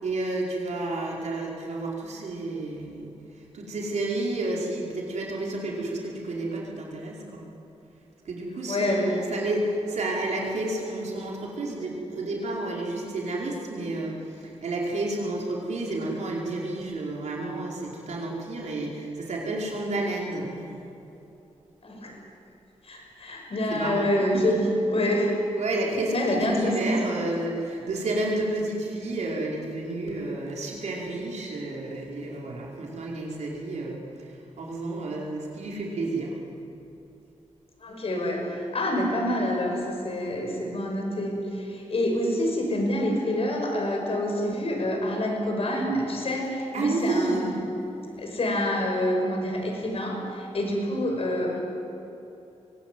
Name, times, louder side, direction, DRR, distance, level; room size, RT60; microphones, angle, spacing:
voice 1, 0.0-3.1 3.5-7.4 8.2-20.7 23.7-24.3 25.6-34.3 34.6-36.4 46.7-47.5, right 2 dB, 80° right, -2 dB, 5.0 m, -30 dB
voice 2, 8.7-9.2 21.8-22.2 22.8-25.4 26.1-27.0 37.8-47.7 48.2-51.6, left 1 dB, 55° left, 2 dB, 5.9 m, -27 dB
23.0 x 17.5 x 9.4 m, 2.9 s
cardioid pair, 70°, 12 cm